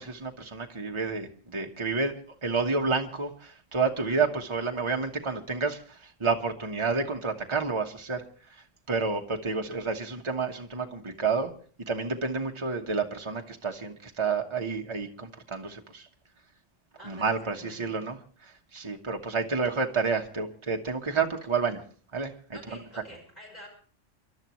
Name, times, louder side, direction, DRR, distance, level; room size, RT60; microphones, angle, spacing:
voice 1, 0.0-2.1 2.4-11.5 11.9-16.1 17.0-18.2 18.4-21.8 22.1-22.6, right 4 dB, 25° right, 2 dB, 1.3 m, -30 dB
voice 2, 17.0-18.1 22.5-23.7, equal, 35° left, 0 dB, 5.7 m, -48 dB
28.5 x 12.0 x 3.1 m, 0.43 s
omnidirectional pair, 1.2 m